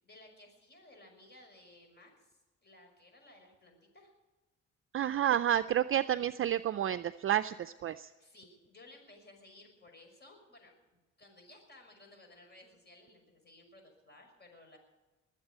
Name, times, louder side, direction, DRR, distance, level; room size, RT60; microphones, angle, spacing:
voice 1, 0.0-4.1 7.9-14.8, left 2 dB, 35° left, 4 dB, 6.0 m, -58 dB
voice 2, 4.9-8.1, right 11 dB, 45° right, 12 dB, 0.5 m, -30 dB
21.5 x 8.1 x 8.2 m, 1.1 s
cardioid pair, 90°, 30 cm